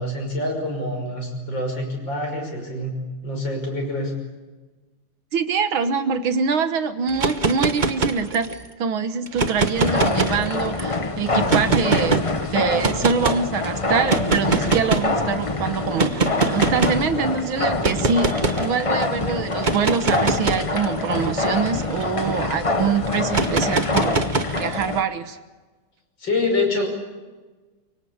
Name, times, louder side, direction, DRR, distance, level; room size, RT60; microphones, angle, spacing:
voice 1, 0.0-3.0 3.2-4.1 26.2-26.9, left 2 dB, 55° left, 2 dB, 6.5 m, -26 dB
voice 2, 5.3-8.5 8.8-12.2 12.5-24.2 24.6-25.4, right 5 dB, 65° right, 10 dB, 1.9 m, -24 dB
sound 1, 7.1-8.6 9.3-10.8 11.5-12.2 12.8-13.4 14.1-15.2 16.0-17.1 17.8-18.7 19.5-22.4 23.3-24.9, right 4 dB, 30° right, 0.9 m, -23 dB
sound 2, 9.7-25.0, left 3 dB, 25° left, 0.7 m, -25 dB
24.5 x 24.0 x 8.7 m, 1.3 s
omnidirectional pair, 2.4 m